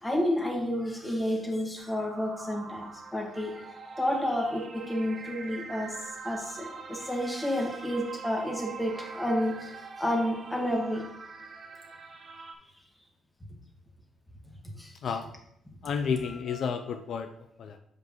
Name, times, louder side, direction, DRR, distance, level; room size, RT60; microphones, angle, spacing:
voice 1, 0.0-2.8 3.1-3.5 4.0-5.9 6.2-9.7 10.0-11.0 14.8-14.9, equal, 10° left, 0 dB, 1.9 m, -30 dB
sound 1, 1.8-12.5, right 4 dB, 50° right, 1.0 m, -44 dB
voice 2, 15.8-17.8, left 6 dB, 65° left, 6 dB, 0.5 m, -31 dB
7.7 x 5.3 x 3.1 m, 0.74 s
cardioid pair, 90°, 0 cm